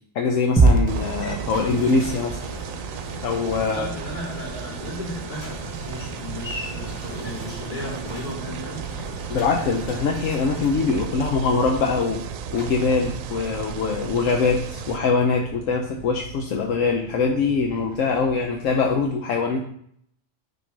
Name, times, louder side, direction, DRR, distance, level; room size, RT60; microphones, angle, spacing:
voice 1, 0.1-2.4 3.2-3.9 9.3-12.2 12.5-19.6, left 4 dB, 75° left, 2 dB, 1.1 m, -23 dB
sound 1, 0.6-18.8, right 2 dB, 5° right, 1.2 m, -31 dB
sound 2, 0.9-15.0, right 9 dB, 85° right, 1.0 m, -35 dB
sound 3, 1.2-19.1, equal, 55° left, 2.2 m, -41 dB
voice 2, 3.7-8.8, left 1 dB, 35° left, -6 dB, 3.5 m, -34 dB
9.9 x 3.7 x 4.6 m, 0.66 s
omnidirectional pair, 1.3 m